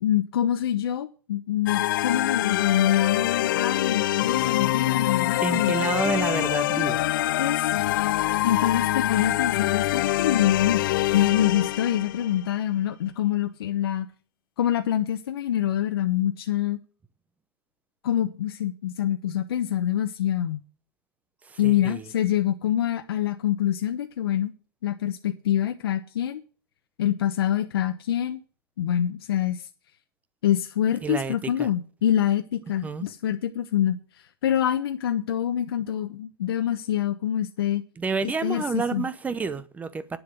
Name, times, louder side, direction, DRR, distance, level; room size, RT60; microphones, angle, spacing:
voice 1, 0.0-5.7 7.4-7.8 8.4-14.1 14.6-16.8 18.0-20.6 21.6-24.5 24.8-26.4 27.0-28.4 28.8-29.6 30.4-34.0 34.4-37.8 38.2-39.0, left 11 dB, 75° left, 1.1 m, -25 dB
sound 1, 1.7-12.4, left 15 dB, 60° left, 0.5 m, -25 dB
voice 2, 5.4-7.0 21.5-22.0 31.0-31.7 32.8-33.1 38.0-40.2, right 4 dB, 10° right, 0.8 m, -29 dB
9.7 x 7.2 x 8.2 m
hypercardioid pair, 135°, 13 cm